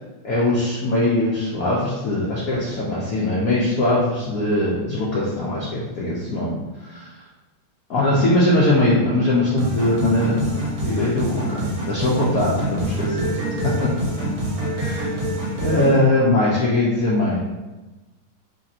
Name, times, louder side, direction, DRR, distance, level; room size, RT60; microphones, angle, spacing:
voice 1, 0.2-6.6 6.8-7.1 7.9-13.3 13.6-14.1 14.7-15.2 15.6-17.4, left 1 dB, 70° left, -6 dB, 0.8 m, -21 dB
sound 1, 9.6-16.0, right 1 dB, 60° right, 1.3 m, -26 dB
3.4 x 2.5 x 4.1 m, 1.1 s
omnidirectional pair, 2.3 m